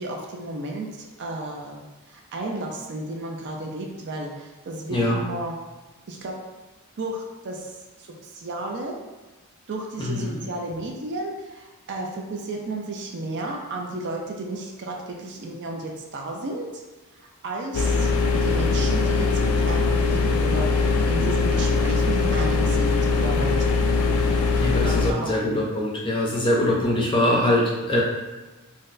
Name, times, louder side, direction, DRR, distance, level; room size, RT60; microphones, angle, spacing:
voice 1, 0.0-5.6 6.1-6.3 7.0-9.0 9.7-16.8 17.1-18.1 18.4-23.6 24.8-25.6, right 2 dB, 50° right, 1 dB, 0.4 m, -33 dB
voice 2, 10.0-10.4 24.6-28.0, left 1 dB, 20° left, -4 dB, 0.6 m, -23 dB
sound 1, 17.7-25.1, left 3 dB, 75° left, 0.3 m, -21 dB
4.0 x 2.1 x 2.5 m, 1.2 s
head